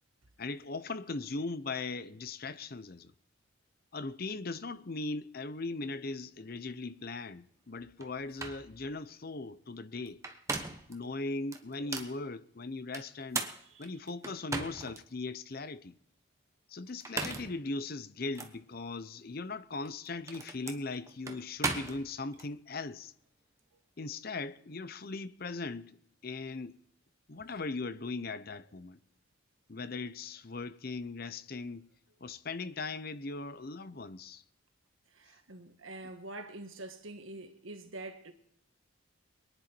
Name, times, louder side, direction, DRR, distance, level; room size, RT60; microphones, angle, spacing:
voice 1, 0.4-3.1 3.9-10.2 10.9-13.5 13.8-15.9 16.7-23.1 24.0-26.8 27.3-29.0 29.7-31.9 32.2-34.4, left 3 dB, 45° left, 0.7 m, -39 dB
sound 1, 8.0-8.1 8.4-8.6 10.1-10.9 11.5-12.1 12.9-15.0 15.5-15.6 16.9-17.6 18.3-18.5 19.7-22.5, right 3 dB, 15° right, 1.0 m, -37 dB
voice 2, 35.1-38.3, right 2 dB, 75° right, 1.5 m, -45 dB
23.0 x 10.0 x 4.5 m
head